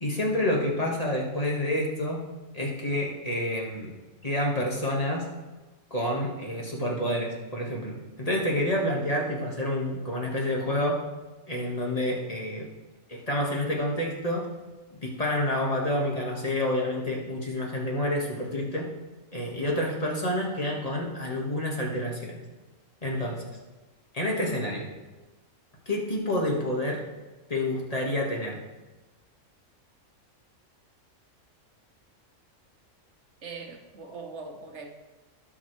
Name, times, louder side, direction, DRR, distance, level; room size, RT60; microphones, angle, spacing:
voice 1, 0.0-2.2 2.5-4.0 4.2-5.2 5.9-11.0 11.5-12.7 13.1-14.5 15.0-18.9 19.3-22.3 23.0-23.4 24.1-24.9 25.9-27.0 27.5-28.6, left 1 dB, 25° left, -2 dB, 1.9 m, -28 dB
voice 2, 33.4-34.9, right 4 dB, 55° right, 3 dB, 1.5 m, -41 dB
17.0 x 6.4 x 3.4 m, 1.2 s
omnidirectional pair, 1.5 m